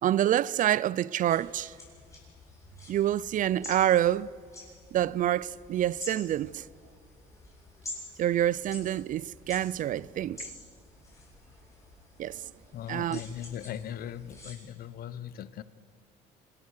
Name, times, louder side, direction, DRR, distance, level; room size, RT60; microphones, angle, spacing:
voice 1, 0.0-1.7 2.9-4.3 4.9-6.7 8.2-10.5 12.2-12.5 12.9-13.2, right 12 dB, 50° right, 0.4 m, -27 dB
sound 1, 1.2-14.5, left 2 dB, 20° left, 7.3 m, -48 dB
voice 2, 12.7-15.6, left 10 dB, 65° left, 0.9 m, -39 dB
26.5 x 17.5 x 6.5 m
cardioid pair, 110°, 17 cm